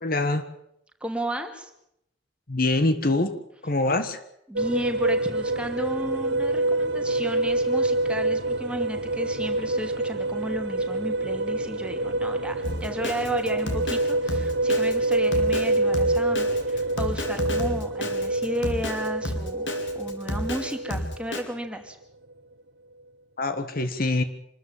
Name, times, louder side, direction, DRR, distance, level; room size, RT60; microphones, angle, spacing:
voice 1, 0.0-0.4 2.5-3.3 3.6-4.2 23.4-24.2, left 2 dB, 50° left, 10 dB, 1.6 m, -24 dB
voice 2, 1.0-1.7 4.5-22.0, equal, 5° right, 4 dB, 2.6 m, -33 dB
sound 1, 4.6-21.8, right 2 dB, 60° right, 1.2 m, -26 dB
Drum kit, 12.6-21.4, left 1 dB, 80° left, 4.0 m, -31 dB
26.5 x 13.5 x 9.0 m, 0.78 s
head